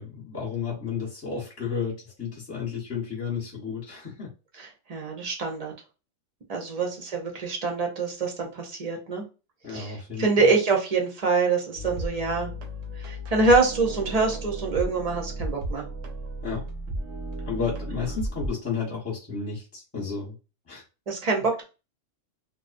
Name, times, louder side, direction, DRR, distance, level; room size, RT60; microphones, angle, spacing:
voice 1, 0.0-4.3 9.6-10.3 16.4-16.6 17.5-20.3 20.7-20.8, left 6 dB, 15° left, 0.8 m, -32 dB
voice 2, 4.6-5.7 6.5-9.2 9.7-12.5 13.0-15.8 21.1-21.6, right 3 dB, 45° right, 0.5 m, -25 dB
sound 1, 11.7-18.5, right 1 dB, 85° right, 1.0 m, -34 dB
2.5 x 2.1 x 2.5 m
omnidirectional pair, 1.3 m